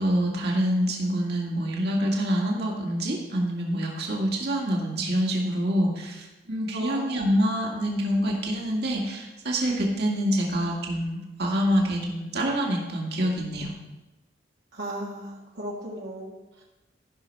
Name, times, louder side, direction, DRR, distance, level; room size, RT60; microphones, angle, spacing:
voice 1, 0.0-13.7, equal, 60° right, -1 dB, 2.2 m, -26 dB
voice 2, 6.7-7.1 14.7-16.6, right 1 dB, 75° right, -4 dB, 1.8 m, -35 dB
14.0 x 6.0 x 5.5 m, 1.1 s
head